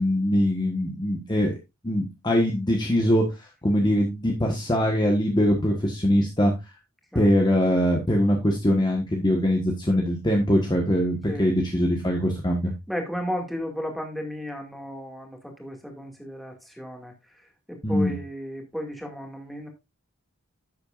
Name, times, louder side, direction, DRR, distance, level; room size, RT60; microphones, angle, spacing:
voice 1, 0.0-1.6 1.8-3.2 3.6-6.5 7.1-12.7 17.8-18.1, equal, 20° left, 1 dB, 1.3 m, -22 dB
voice 2, 12.9-17.1 17.7-19.7, equal, ahead, 1 dB, 2.1 m, -34 dB
10.5 x 8.1 x 2.5 m, 0.23 s
head